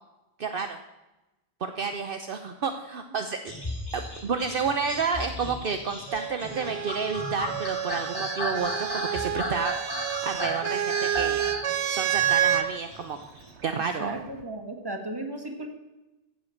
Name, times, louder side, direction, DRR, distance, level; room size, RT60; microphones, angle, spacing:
voice 1, 0.4-0.8 1.6-3.5 3.9-9.7 10.2-11.4 11.9-13.2 13.6-14.2, right 5 dB, 60° right, 7 dB, 1.0 m, -30 dB
sound 1, 3.5-13.5, equal, 20° left, 3.3 m, -35 dB
sound 2, 6.1-12.7 13.8-14.4, right 10 dB, 90° right, 1.1 m, -29 dB
voice 2, 14.0-15.7, right 2 dB, 20° right, 5 dB, 1.8 m, -35 dB
15.5 x 7.7 x 6.5 m, 1.0 s
omnidirectional pair, 1.1 m